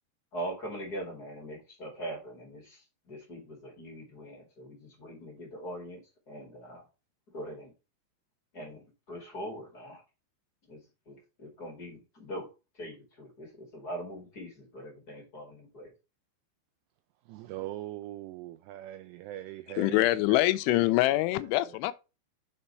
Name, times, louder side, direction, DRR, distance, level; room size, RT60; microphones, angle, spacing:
voice 1, 0.3-6.0 6.3-6.8 7.3-7.7 8.5-10.0 10.7-10.8 11.0-12.5 12.8-15.9, right 1 dB, 35° left, 1.5 m, -42 dB
voice 2, 17.3-20.4 20.7-20.9, right 14 dB, 85° right, 2.4 m, -41 dB
voice 3, 19.8-21.9, left 17 dB, 85° left, 3.0 m, -25 dB
6.8 x 4.3 x 5.4 m
omnidirectional pair, 5.4 m